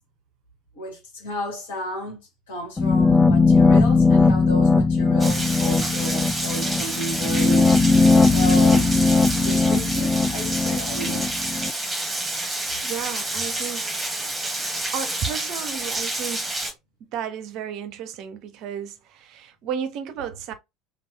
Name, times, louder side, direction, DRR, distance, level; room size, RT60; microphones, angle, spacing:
voice 1, 0.7-2.2 2.5-7.8 8.3-8.9 9.4-11.3, equal, 65° left, 1.4 m, -33 dB
sound 1, 2.8-11.7, left 3 dB, 15° left, 0.3 m, -19 dB
Rain, 5.2-16.7, right 2 dB, 10° right, 1.1 m, -29 dB
voice 2, 12.8-14.0 14.9-16.5 17.0-20.5, right 8 dB, 50° right, 0.5 m, -33 dB
3.3 x 2.3 x 3.2 m
figure-of-eight pair, 65°, 0 cm